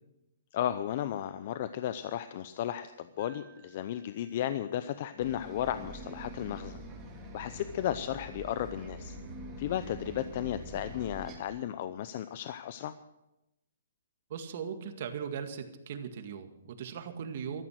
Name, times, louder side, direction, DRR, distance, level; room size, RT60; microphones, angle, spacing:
voice 1, 0.5-6.8 7.3-9.2 9.6-12.9, left 11 dB, 45° left, 12 dB, 0.6 m, -34 dB
Keyboard (musical), 3.2-5.0, right 10 dB, 30° right, 4.4 m, -61 dB
Bus, 5.2-11.4, right 1 dB, 15° right, 3.1 m, -45 dB
voice 2, 14.3-17.6, right 7 dB, 50° right, 7 dB, 2.0 m, -39 dB
14.0 x 13.5 x 6.4 m, 0.92 s
hypercardioid pair, 155°, 0 cm